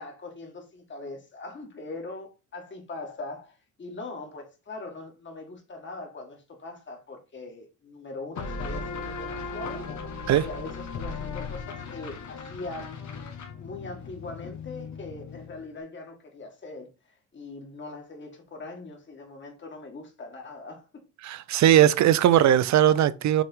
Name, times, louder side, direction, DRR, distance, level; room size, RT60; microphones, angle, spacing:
voice 1, 0.0-9.9 10.4-13.0 13.6-16.9 17.3-21.0, left 3 dB, 40° left, 2.2 m, -41 dB
sound 1, 8.4-15.7, left 4 dB, 70° left, 1.6 m, -37 dB
voice 2, 21.2-23.4, right 11 dB, 65° right, 0.7 m, -19 dB
6.3 x 3.5 x 4.6 m
cardioid pair, 90°, 30 cm